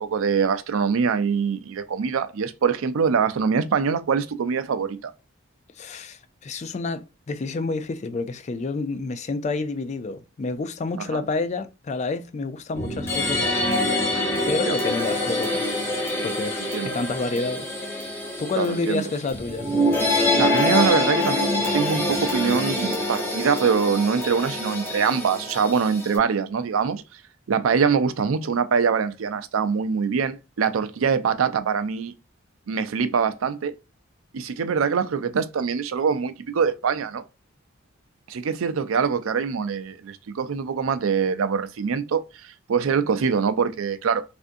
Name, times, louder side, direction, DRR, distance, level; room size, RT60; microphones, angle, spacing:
voice 1, 0.0-5.1 11.1-11.2 14.7-14.8 16.7-17.0 18.6-19.1 20.3-27.0 27.5-32.1 32.7-33.7 34.3-37.2 38.3-44.2, right 6 dB, 85° right, 0.4 m, -24 dB
voice 2, 5.8-13.9 14.5-15.8 16.2-17.8 18.4-19.7 19.9-20.1, left 3 dB, 35° left, 0.3 m, -29 dB
sound 1, 12.7-26.2, left 1 dB, 10° left, 0.8 m, -25 dB
3.4 x 2.5 x 2.5 m
head